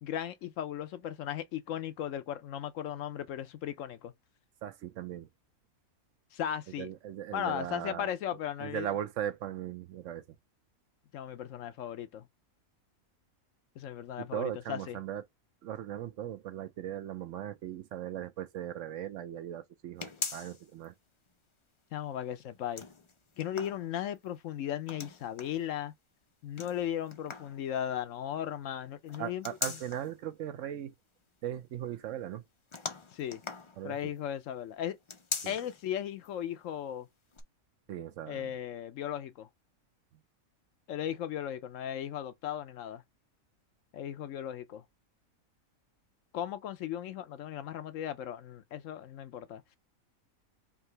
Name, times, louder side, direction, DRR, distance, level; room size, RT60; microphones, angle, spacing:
voice 1, 0.0-4.1 6.3-6.9 7.3-8.9 11.1-12.3 13.8-15.0 21.9-22.8 23.4-25.9 26.4-29.5 33.1-33.4 33.8-35.0 35.5-37.1 38.3-39.5 40.9-43.0 43.9-44.8 46.3-49.6, left 10 dB, 70° left, 0.9 m, -36 dB
voice 2, 4.6-5.3 6.8-8.1 8.6-10.4 14.2-15.2 15.6-20.9 29.2-30.9 31.4-32.4 33.8-34.1 35.4-35.5 37.9-38.6, right 11 dB, 70° right, 0.9 m, -38 dB
sound 1, 20.0-20.8 21.3-21.4 22.5-24.3 24.8-25.6 26.6-27.6 29.1-30.1 32.7-34.2 35.0-35.8 36.2-36.3 37.3-37.4, left 4 dB, 40° left, 0.4 m, -40 dB
3.5 x 2.9 x 4.3 m
omnidirectional pair, 1.5 m